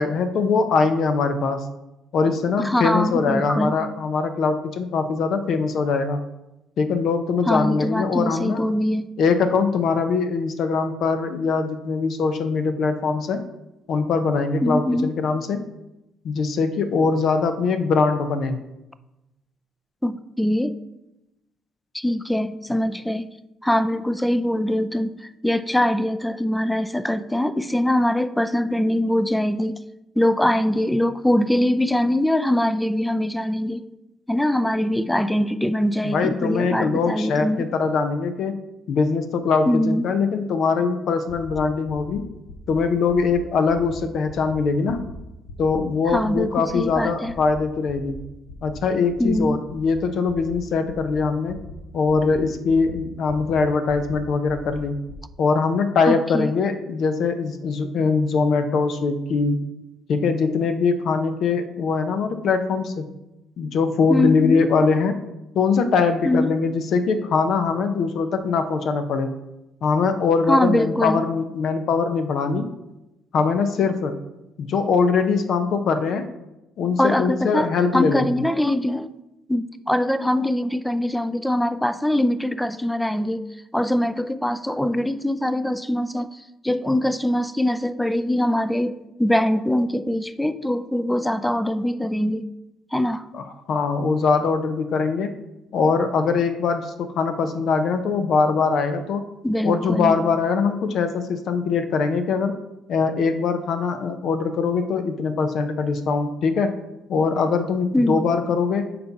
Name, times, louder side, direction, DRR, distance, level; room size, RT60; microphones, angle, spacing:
voice 1, 0.0-1.6 2.1-6.2 6.8-8.6 9.2-13.4 13.9-15.6 16.2-18.6 36.0-38.5 38.9-42.2 42.7-45.0 45.6-48.2 48.6-51.6 51.9-55.0 55.4-59.6 60.1-63.0 63.6-65.1 65.5-69.3 69.8-72.7 73.3-74.1 74.6-76.2 76.8-78.4 93.3-95.3 95.7-99.2 99.6-102.5 102.9-106.7 107.1-108.9, left 4 dB, 65° left, 8 dB, 0.7 m, -22 dB
voice 2, 2.6-3.7 7.5-9.1 14.6-15.1 20.0-20.8 21.9-23.3 23.6-25.1 25.4-29.8 30.2-33.8 34.3-37.7 39.7-40.1 46.1-47.3 49.2-49.6 56.1-56.5 64.1-64.6 66.2-66.5 70.5-71.2 77.0-79.1 79.5-83.4 83.7-86.3 86.6-92.5 92.9-93.2 99.4-100.2 107.9-108.2, left 1 dB, 5° left, 12 dB, 0.4 m, -22 dB
sound 1, 41.3-41.5 41.9-42.1 42.5-42.7 43.1-43.3 43.7-43.9 44.3-44.5 44.9-45.1 45.5-45.7 46.1-46.3 46.7-46.9 47.3-47.5 47.9-48.1 48.5-48.8 49.1-49.3 49.7-49.9 50.3-50.5 50.9-51.1 51.5-51.7 52.1-52.3 52.7-52.9 53.3-53.5 53.9-54.1 54.5-54.7 55.1-55.2, left 5 dB, 85° left, 1.1 m, -40 dB
6.8 x 4.2 x 5.3 m, 0.93 s
supercardioid pair, 80°, 0 cm